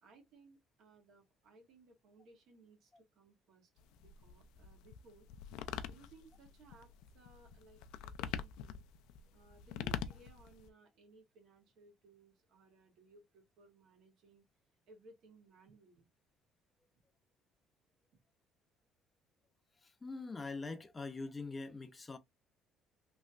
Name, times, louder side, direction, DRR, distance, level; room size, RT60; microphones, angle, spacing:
voice 1, 0.0-3.7 4.0-5.3 5.9-8.8 9.3-14.5 14.9-16.1, right 3 dB, 60° right, 1.6 m, -62 dB
sound 1, 3.8-10.7, left 9 dB, 90° left, 0.3 m, -44 dB
voice 2, 19.8-22.2, left 3 dB, 15° left, 0.5 m, -43 dB
3.1 x 2.9 x 2.4 m
cardioid pair, 145°, 0 cm